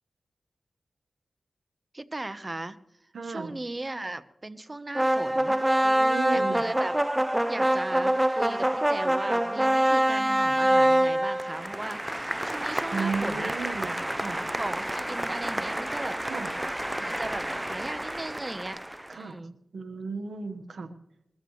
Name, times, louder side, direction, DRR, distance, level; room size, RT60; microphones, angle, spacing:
voice 1, 1.9-2.8 3.2-5.6 6.3-6.9 7.5-13.5 13.8-14.0 14.5-16.2 17.0-18.8 19.1-19.6, right 2 dB, 30° right, 12 dB, 1.0 m, -37 dB
voice 2, 3.1-3.5 5.8-6.6 12.9-14.4 16.2-16.5 19.1-19.4 19.7-20.9, right 4 dB, 80° right, 7 dB, 1.3 m, -34 dB
sound 1, 5.0-19.1, right 1 dB, 15° right, 0.5 m, -26 dB
21.5 x 14.0 x 3.2 m, 0.82 s
cardioid pair, 45°, 0 cm